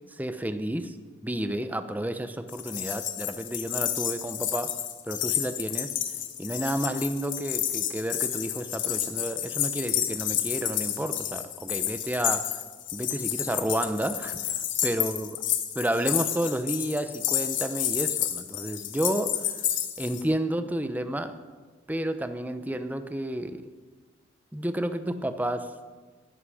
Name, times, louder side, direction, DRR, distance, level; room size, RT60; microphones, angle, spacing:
voice 1, 0.2-0.9 1.2-4.8 5.1-5.9 6.4-12.5 12.9-15.3 15.7-19.5 20.0-21.4 21.9-23.7 24.5-25.7, right 1 dB, 10° right, 9 dB, 0.8 m, -31 dB
sound 1, 2.5-20.2, left 11 dB, 85° left, 1.4 m, -30 dB
19.5 x 11.5 x 5.0 m, 1.4 s
head